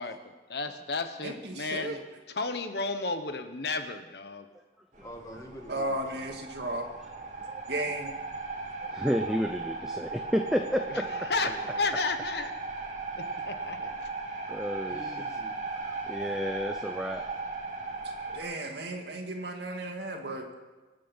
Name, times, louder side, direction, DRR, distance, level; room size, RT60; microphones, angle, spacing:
voice 1, 0.0-2.0 2.3-4.5 10.9-12.5 13.2-14.1, left 3 dB, 65° left, 8 dB, 1.2 m, -33 dB
voice 2, 1.2-2.0 5.7-6.9 7.7-8.1 18.3-20.4, right 1 dB, 70° right, 2 dB, 2.3 m, -34 dB
sound 1, 4.9-18.4, right 3 dB, 45° right, 2.3 m, -37 dB
voice 3, 5.0-6.3 11.0-11.9 14.9-15.7, equal, 20° left, 2 dB, 1.9 m, -47 dB
voice 4, 8.9-11.0 14.5-15.1 15.8-17.2, equal, 5° right, 4 dB, 0.6 m, -31 dB
24.5 x 9.0 x 5.6 m, 1.2 s
head